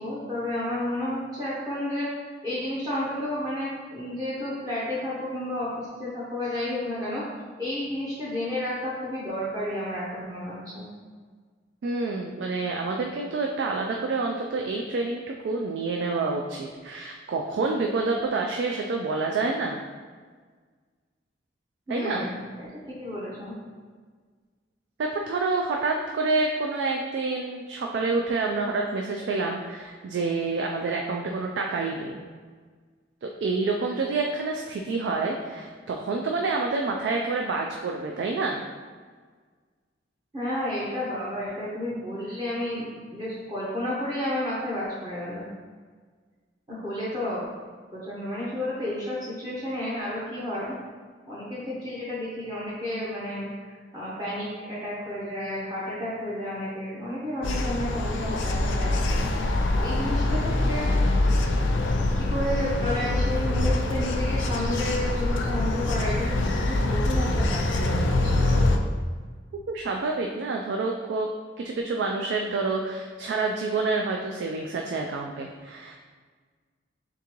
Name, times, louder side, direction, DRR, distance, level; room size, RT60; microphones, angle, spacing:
voice 1, 0.0-2.1 2.4-7.2 7.6-10.8 21.9-23.5 40.3-45.4 46.7-47.4 47.9-50.7 51.3-60.9 62.0-68.6, left 1 dB, 20° right, -8 dB, 0.7 m, -31 dB
voice 2, 11.8-19.8 21.9-22.2 25.0-32.2 33.2-38.6 69.7-71.3 71.6-75.9, right 3 dB, 70° right, 1 dB, 0.3 m, -28 dB
sound 1, 57.4-68.8, left 2 dB, 75° left, 0.4 m, -24 dB
3.7 x 3.6 x 2.9 m, 1.5 s
head